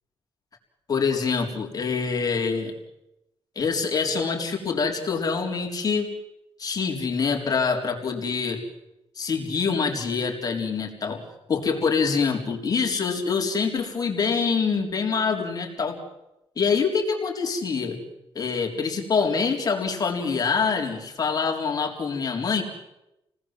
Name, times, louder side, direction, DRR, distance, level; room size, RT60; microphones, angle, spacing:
voice 1, 0.9-2.7 3.6-6.1 6.6-8.6 9.2-11.2 11.5-16.0 16.6-18.0 18.3-22.6, left 5 dB, 40° left, 1 dB, 3.9 m, -25 dB
29.0 x 19.0 x 7.6 m, 0.92 s
cardioid pair, 130°, 10 cm